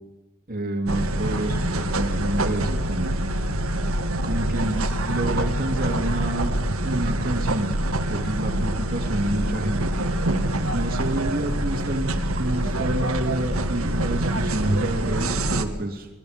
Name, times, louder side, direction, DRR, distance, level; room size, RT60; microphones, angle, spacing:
voice 1, 0.5-3.2 4.2-6.5 6.8-9.9 10.7-16.1, right 1 dB, 40° right, 3 dB, 3.2 m, -28 dB
sound 1, 0.9-15.6, right 1 dB, 75° right, 1.9 m, -25 dB
30.0 x 20.5 x 5.3 m, 1.2 s
head